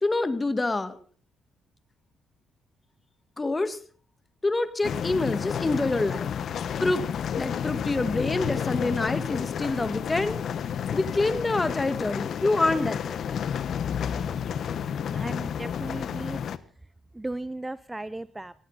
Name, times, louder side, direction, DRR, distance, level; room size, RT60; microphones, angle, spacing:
voice 1, 0.0-1.0 3.4-3.8 4.4-6.3 6.8-7.0 7.4-10.4 10.9-13.3, left 2 dB, 20° left, 10 dB, 2.0 m, -26 dB
sound 1, 4.8-16.6, left 8 dB, 60° left, 1.1 m, -31 dB
voice 2, 15.1-16.4 17.1-18.5, right 2 dB, 15° right, 15 dB, 0.7 m, -36 dB
19.5 x 16.5 x 4.1 m, 0.43 s
cardioid pair, 90°, 0 cm